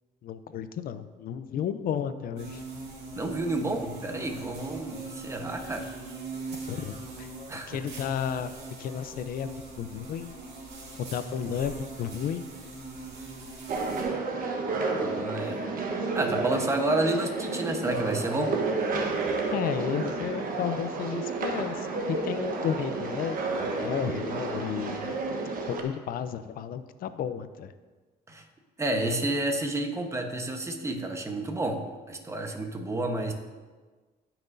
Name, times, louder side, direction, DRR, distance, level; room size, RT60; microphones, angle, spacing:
voice 1, 0.2-2.6 6.7-8.5 8.8-10.4 11.0-12.5 19.5-25.2 25.7-27.7, left 8 dB, 60° left, 11 dB, 0.6 m, -33 dB
sound 1, 2.4-14.0, right 3 dB, 80° right, 2.7 m, -41 dB
voice 2, 3.1-5.9 7.5-7.8 15.0-15.6 16.1-18.6 28.3-28.4 28.8-31.8 32.1-33.3, right 2 dB, 15° right, 4 dB, 1.1 m, -30 dB
sound 2, 13.7-25.8, right 3 dB, 55° right, 1.2 m, -31 dB
17.0 x 6.0 x 2.7 m, 1.3 s
cardioid pair, 110°, 17 cm